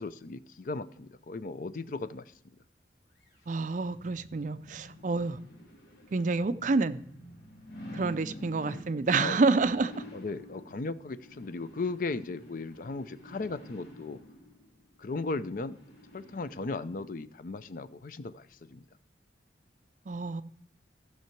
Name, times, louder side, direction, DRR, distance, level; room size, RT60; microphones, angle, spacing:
voice 1, 0.0-2.2 9.2-9.4 10.1-14.2 15.0-15.8 16.1-18.8, left 3 dB, 50° left, 0.5 m, -36 dB
sound 1, 3.2-17.1 17.6-17.7, equal, 70° left, 3.5 m, -50 dB
voice 2, 3.5-5.4 6.1-7.0 7.9-10.0 20.1-20.4, right 3 dB, 45° right, 0.4 m, -28 dB
14.5 x 5.8 x 4.5 m
head